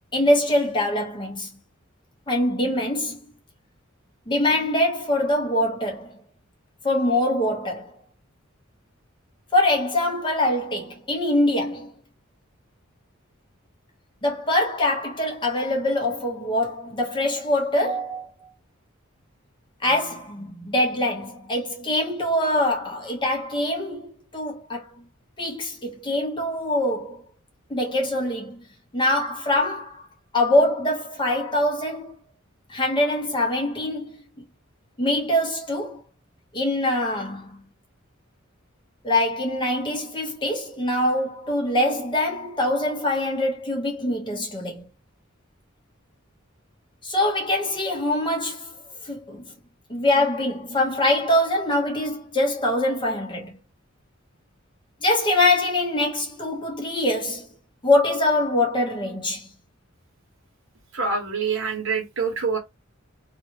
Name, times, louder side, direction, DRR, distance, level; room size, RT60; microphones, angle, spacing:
voice 1, 0.1-1.5 2.3-3.2 4.3-6.1 6.8-7.9 9.5-11.9 14.2-18.3 19.8-24.8 25.4-27.2 27.7-28.6 28.9-30.0 30.3-32.2 32.7-34.2 35.0-36.0 36.5-37.5 39.0-44.8 47.0-48.7 49.1-49.4 49.9-53.5 55.0-57.5 57.8-59.5, left 1 dB, 25° left, 0.9 m, -23 dB
voice 2, 60.9-62.6, right 5 dB, 70° right, 1.1 m, -25 dB
2.7 x 2.4 x 2.8 m
head